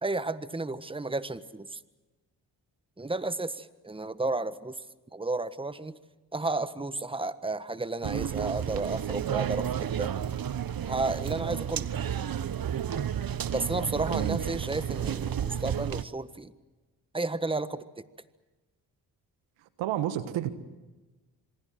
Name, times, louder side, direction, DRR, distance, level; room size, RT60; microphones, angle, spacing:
voice 1, 0.0-1.8 3.0-4.8 5.1-6.0 6.3-10.1 10.8-11.9 13.5-16.5 17.1-18.1, right 2 dB, 10° right, 13 dB, 1.5 m, -32 dB
sound 1, 8.0-16.0, right 9 dB, 50° right, 1.2 m, -32 dB
voice 2, 14.1-14.4 19.8-20.5, right 12 dB, 80° right, 11 dB, 1.6 m, -30 dB
27.0 x 24.5 x 7.7 m, 1.2 s
hypercardioid pair, 45°, 45 cm